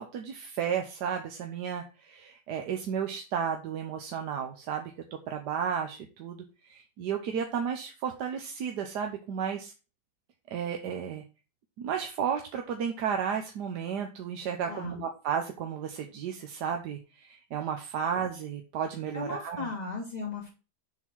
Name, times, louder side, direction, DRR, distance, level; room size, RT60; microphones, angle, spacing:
voice 1, 0.0-4.9 5.3-9.7 10.5-11.2 11.8-19.7, right 7 dB, 75° right, 4 dB, 1.4 m, -33 dB
voice 2, 14.6-15.0 19.1-20.5, left 3 dB, 25° left, -2 dB, 2.7 m, -36 dB
7.0 x 3.9 x 6.0 m, 0.32 s
omnidirectional pair, 1.8 m